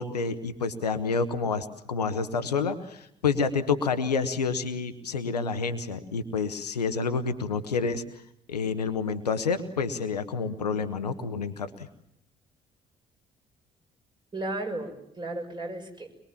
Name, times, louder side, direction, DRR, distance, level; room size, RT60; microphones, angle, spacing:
voice 1, 0.0-8.0 8.5-11.7, left 5 dB, 80° left, 10 dB, 1.2 m, -28 dB
voice 2, 14.3-16.1, right 2 dB, 20° right, 2 dB, 6.6 m, -34 dB
24.0 x 22.5 x 7.2 m, 0.77 s
figure-of-eight pair, 50°, 20 cm